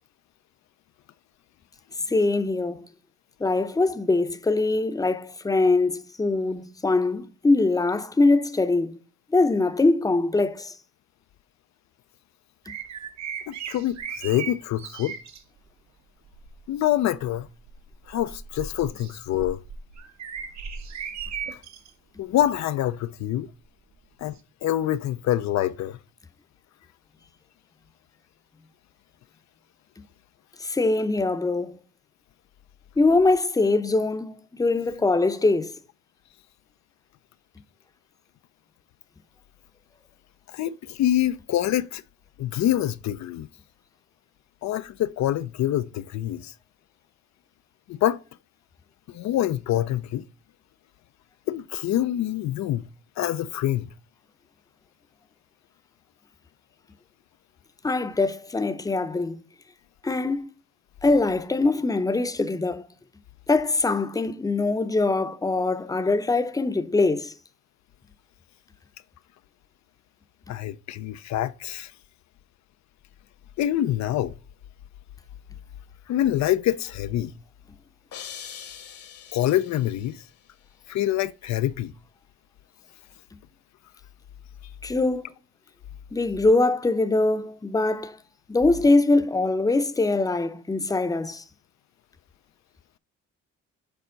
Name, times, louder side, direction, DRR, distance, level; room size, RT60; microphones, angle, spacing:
voice 1, 2.1-2.9 3.4-8.9 9.3-10.7 30.6-31.8 33.0-35.7 57.8-59.4 60.0-60.5 61.0-62.8 63.5-67.3 84.8-85.3 86.1-88.2 88.5-91.4, left 3 dB, 10° left, 0.7 m, -23 dB
sound 1, 12.7-15.4 16.2-16.6 17.2-21.9 22.4-22.6 24.4-24.5, right 7 dB, 65° right, 1.2 m, -37 dB
voice 2, 13.5-15.1 16.7-17.5 18.1-19.6 21.5-21.6 22.2-23.5 24.2-24.4 24.6-26.0 40.5-42.0 42.4-43.5 44.6-46.5 47.9-48.2 49.1-50.2 51.5-52.8 53.2-53.9 70.5-71.9 73.6-74.3 76.1-77.3 79.3-80.2 80.9-81.9, left 12 dB, 65° left, 0.5 m, -25 dB
sound 2, 78.1-80.2, left 8 dB, 50° left, 1.0 m, -42 dB
7.0 x 4.2 x 3.8 m
cardioid pair, 90°, 30 cm